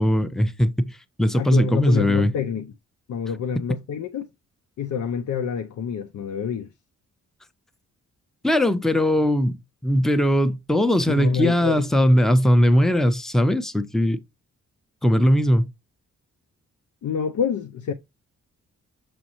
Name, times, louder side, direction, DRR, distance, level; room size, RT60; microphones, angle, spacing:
voice 1, 0.0-2.3 8.4-9.6 9.8-14.2 15.0-15.7, equal, ahead, 0.6 m, -19 dB
voice 2, 1.4-2.7 3.1-4.3 4.8-6.7 11.1-11.8 17.0-17.9, left 7 dB, 70° left, 0.6 m, -27 dB
6.2 x 5.2 x 2.9 m
cardioid pair, 75°, 31 cm